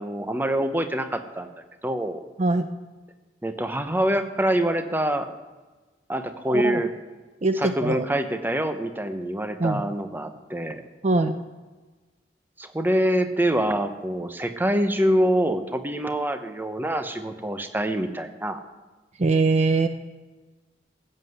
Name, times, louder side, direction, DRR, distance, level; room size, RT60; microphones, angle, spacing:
voice 1, 0.0-1.5 1.8-2.2 3.4-5.3 6.1-6.9 7.6-10.8 12.6-18.6, right 1 dB, 10° right, 8 dB, 0.9 m, -25 dB
voice 2, 6.5-6.8 7.4-8.1 9.6-9.8 11.0-11.3 19.2-19.9, right 3 dB, 40° right, 8 dB, 0.6 m, -22 dB
15.0 x 7.7 x 8.1 m, 1.2 s
head